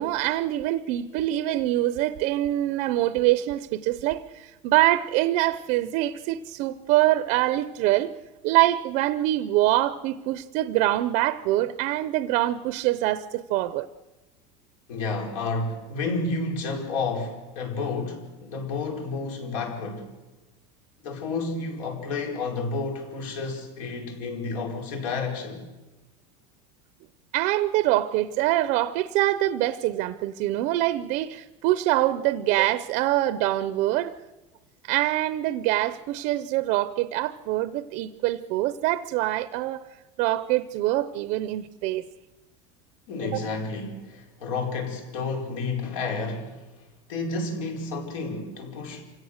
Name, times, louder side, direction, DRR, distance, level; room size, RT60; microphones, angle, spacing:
voice 1, 0.0-8.1 8.4-13.9 27.3-34.1 34.8-39.8 40.2-42.1 43.3-43.4, right 15 dB, 45° right, 0.6 m, -24 dB
voice 2, 14.9-20.1 21.0-25.7 43.1-46.7 47.1-49.0, left 3 dB, 85° left, 4.7 m, -31 dB
27.5 x 16.5 x 6.5 m
cardioid pair, 170°, 16 cm